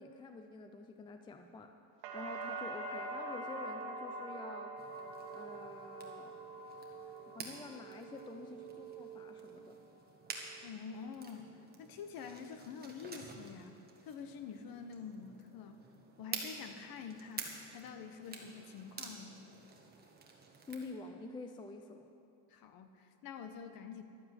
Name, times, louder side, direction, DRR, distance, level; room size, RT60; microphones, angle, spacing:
voice 1, 0.0-1.7 2.1-4.7 5.3-6.3 7.3-9.8 20.7-22.1, left 3 dB, 10° left, 6 dB, 0.4 m, -48 dB
sound 1, 2.0-9.9 10.3-11.0, right 2 dB, 60° right, 1.6 m, -45 dB
sound 2, 4.8-20.9, right 4 dB, 20° right, 1.6 m, -50 dB
voice 2, 10.6-11.5 11.8-13.8 14.1-15.8 16.2-19.4 22.5-24.0, left 6 dB, 45° left, 8 dB, 1.2 m, -47 dB
12.5 x 8.8 x 7.9 m, 2.5 s
cardioid pair, 135°, 47 cm